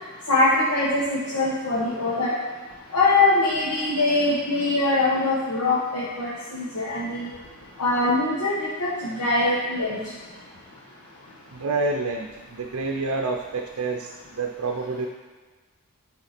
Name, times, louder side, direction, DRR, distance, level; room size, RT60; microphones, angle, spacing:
voice 1, 0.3-2.3 2.9-7.3 7.8-10.0, left 2 dB, 85° left, -7 dB, 1.2 m, -23 dB
voice 2, 11.5-15.1, right 3 dB, 80° right, 2 dB, 0.5 m, -28 dB
8.8 x 3.6 x 4.2 m, 1.4 s
head